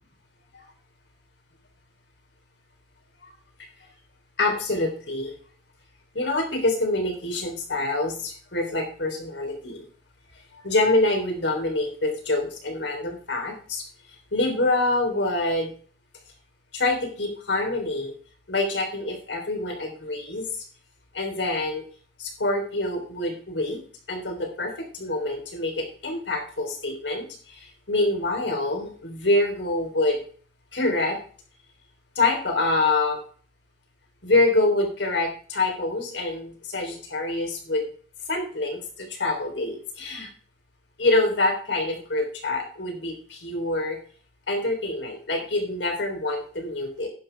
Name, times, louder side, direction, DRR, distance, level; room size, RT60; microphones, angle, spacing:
voice 1, 4.4-5.3 6.1-9.8 10.5-13.8 14.3-15.7 16.7-18.1 18.5-20.5 21.1-21.8 22.2-23.8 24.1-30.2 30.7-31.2 32.2-33.2 34.2-37.8 38.3-40.3 41.0-44.0 44.5-47.1, left 2 dB, 70° left, 3 dB, 3.7 m, -26 dB
11.0 x 10.5 x 3.5 m, 0.43 s
head